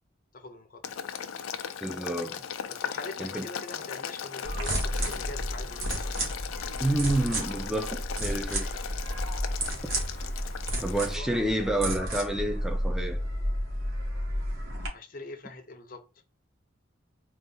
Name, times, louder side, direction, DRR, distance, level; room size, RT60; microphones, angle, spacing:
voice 1, 0.3-0.8 2.7-5.9 10.7-11.6 14.9-16.0, left 2 dB, 45° left, 0.6 m, -43 dB
Boiling, 0.8-11.1, left 8 dB, 90° left, 0.4 m, -38 dB
voice 2, 1.8-2.4 3.2-3.5 6.8-8.7 10.8-13.2, right 1 dB, 5° right, 0.4 m, -29 dB
sound 1, 4.4-14.9, equal, 80° right, 1.5 m, -32 dB
3.8 x 2.4 x 3.8 m
head